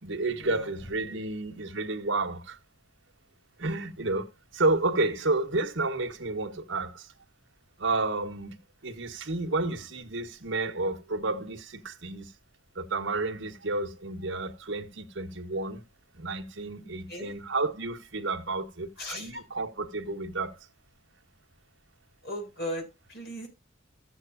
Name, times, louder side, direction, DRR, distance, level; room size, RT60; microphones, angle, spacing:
voice 1, 0.0-2.6 3.6-7.1 7.8-12.3 12.7-15.8 16.2-20.5, right 2 dB, 65° right, 1.4 m, -31 dB
voice 2, 19.0-19.3 22.2-23.5, equal, 50° left, 6.6 m, -37 dB
14.0 x 8.1 x 2.7 m
head